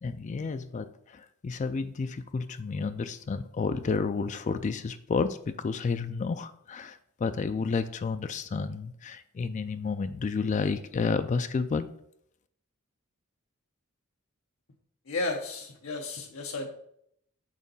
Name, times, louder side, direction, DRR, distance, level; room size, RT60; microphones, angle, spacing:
voice 1, 0.0-11.9, left 4 dB, 35° left, 11 dB, 0.3 m, -31 dB
voice 2, 15.1-16.7, left 3 dB, 90° left, 2 dB, 0.8 m, -33 dB
6.4 x 4.0 x 5.4 m, 0.71 s
head